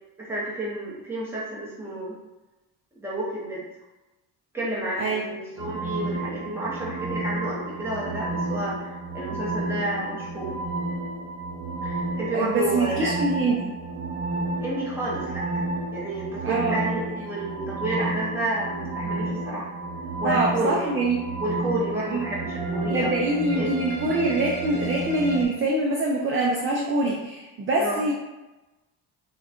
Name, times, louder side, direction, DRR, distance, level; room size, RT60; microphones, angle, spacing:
voice 1, 0.2-2.1 3.0-3.6 4.5-10.6 11.8-13.2 14.6-15.6 15.9-19.7 20.2-21.0 21.4-23.2 23.5-23.7 27.8-28.0, right 1 dB, 5° right, -7 dB, 1.0 m, -30 dB
sound 1, 5.6-25.4, right 2 dB, 65° right, 0.9 m, -31 dB
voice 2, 12.3-13.8 16.4-16.9 20.2-21.2 22.1-22.2 22.9-28.1, right 2 dB, 30° right, -2 dB, 0.4 m, -24 dB
3.8 x 2.4 x 4.2 m, 1.1 s
cardioid pair, 160°, 42 cm